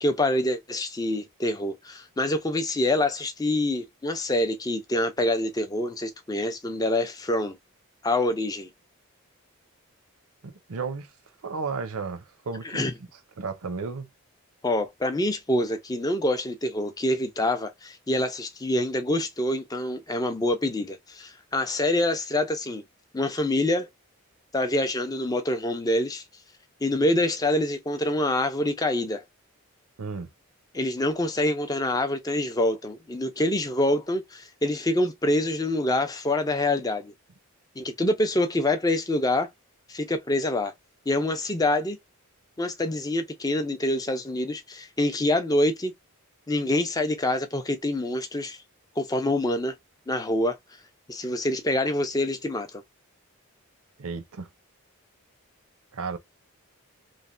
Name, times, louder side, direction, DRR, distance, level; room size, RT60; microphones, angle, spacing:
voice 1, 0.0-7.6 8.0-8.7 12.6-12.9 14.6-22.8 23.1-23.9 24.5-26.2 26.8-29.2 30.7-37.1 37.8-39.5 39.9-40.7 41.1-42.0 42.6-45.9 46.5-48.6 49.0-49.7 50.1-50.6 51.1-52.8, left 1 dB, 15° left, 0.4 m, -26 dB
voice 2, 10.4-11.1 11.4-12.8 13.4-14.1 30.0-30.3 54.0-54.5 55.9-56.2, right 4 dB, 75° right, 0.6 m, -33 dB
3.2 x 2.1 x 2.5 m
head